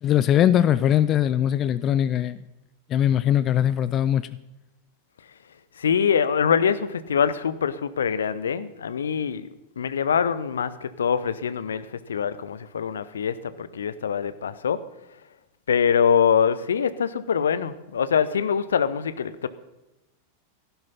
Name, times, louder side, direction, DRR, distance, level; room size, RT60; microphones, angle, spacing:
voice 1, 0.0-2.4 2.9-4.3, left 10 dB, 30° left, 16 dB, 0.5 m, -21 dB
voice 2, 5.8-9.5 9.8-14.8 15.7-19.5, left 7 dB, 65° left, 15 dB, 0.8 m, -24 dB
15.0 x 11.5 x 5.6 m, 0.97 s
figure-of-eight pair, 90°, 0 cm